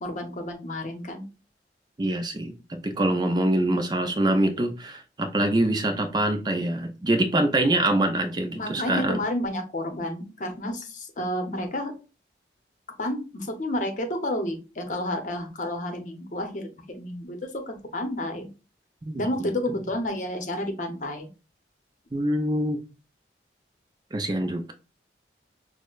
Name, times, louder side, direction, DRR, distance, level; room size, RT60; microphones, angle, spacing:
voice 1, 0.0-1.2 8.6-11.9 13.0-16.7 16.9-18.5 19.1-21.3, left 1 dB, 45° left, 6 dB, 0.7 m, -30 dB
voice 2, 2.0-9.2 19.0-19.2 22.1-22.8 24.1-24.7, right 1 dB, 25° right, 6 dB, 0.4 m, -24 dB
6.2 x 2.1 x 2.3 m, 0.32 s
head